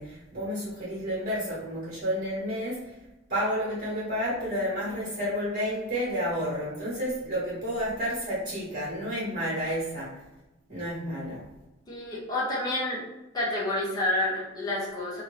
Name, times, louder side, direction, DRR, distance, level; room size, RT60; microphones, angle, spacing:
voice 1, 0.0-3.0 3.3-10.2 10.7-11.5, equal, 50° right, -9 dB, 1.4 m, -31 dB
voice 2, 11.9-13.0 13.3-15.2, left 1 dB, 20° left, -7 dB, 0.8 m, -29 dB
2.7 x 2.6 x 3.2 m, 1.0 s
head